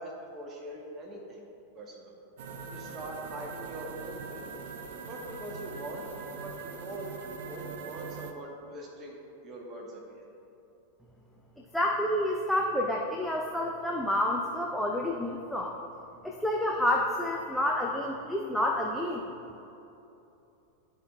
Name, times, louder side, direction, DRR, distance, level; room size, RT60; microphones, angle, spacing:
voice 1, 0.0-1.4 1.7-2.1 2.7-4.5 5.1-6.1 6.4-6.5 6.8-9.2 9.4-10.2, right 1 dB, 30° right, -1 dB, 1.0 m, -42 dB
sound 1, 2.4-8.3, right 5 dB, 55° right, 0.5 m, -42 dB
voice 2, 11.7-15.8 16.2-19.2, left 1 dB, ahead, -1 dB, 0.5 m, -29 dB
12.5 x 4.6 x 2.2 m, 2.9 s
figure-of-eight pair, 90°, 0 cm